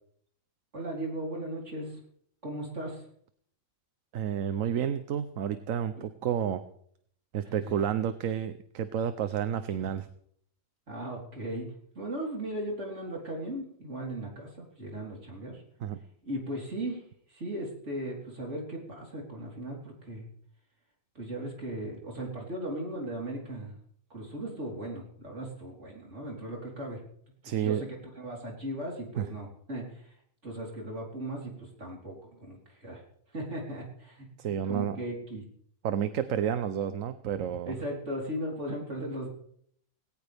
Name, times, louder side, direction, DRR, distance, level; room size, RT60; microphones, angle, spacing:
voice 1, 0.7-2.0 2.4-3.1 6.0-6.1 7.4-7.7 10.9-15.6 16.2-20.3 21.1-23.7 24.1-27.0 27.4-30.1 30.4-33.0 33.3-34.3 34.7-35.4 37.6-39.3, right 1 dB, 55° right, -1 dB, 4.2 m, -37 dB
voice 2, 4.1-6.6 7.3-10.1 15.8-16.0 27.4-27.8 29.2-29.3 34.4-35.0 35.8-37.7, right 9 dB, 75° right, 11 dB, 1.1 m, -30 dB
19.0 x 17.5 x 3.5 m, 0.65 s
omnidirectional pair, 1.4 m